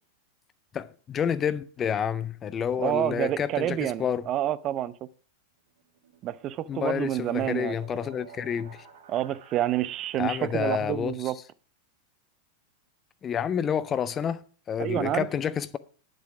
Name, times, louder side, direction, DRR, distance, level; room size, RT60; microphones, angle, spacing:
voice 1, 0.7-4.3 6.7-8.8 10.2-11.3 13.2-15.8, left 8 dB, 25° left, 0.6 m, -29 dB
voice 2, 2.8-4.9 6.2-7.7 9.1-11.4 14.8-15.3, right 12 dB, 35° right, 0.5 m, -28 dB
sound 1, 5.8-10.6, right 8 dB, 60° right, 2.7 m, -51 dB
10.5 x 7.6 x 5.9 m
figure-of-eight pair, 90°, 0 cm